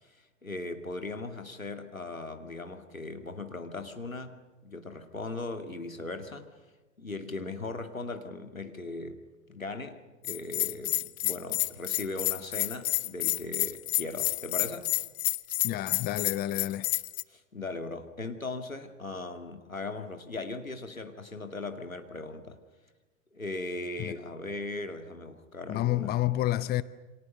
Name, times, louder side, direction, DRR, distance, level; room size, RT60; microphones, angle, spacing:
voice 1, 0.0-6.5 7.0-9.2 9.5-14.9 17.3-22.6 23.3-26.2, left 2 dB, 90° left, 2.5 m, -38 dB
Bell, 10.2-17.2, left 16 dB, 55° left, 0.9 m, -29 dB
voice 2, 15.6-16.9 24.0-24.1 25.7-26.8, left 14 dB, 25° left, 0.8 m, -29 dB
28.5 x 25.5 x 6.8 m
figure-of-eight pair, 90°, 40 cm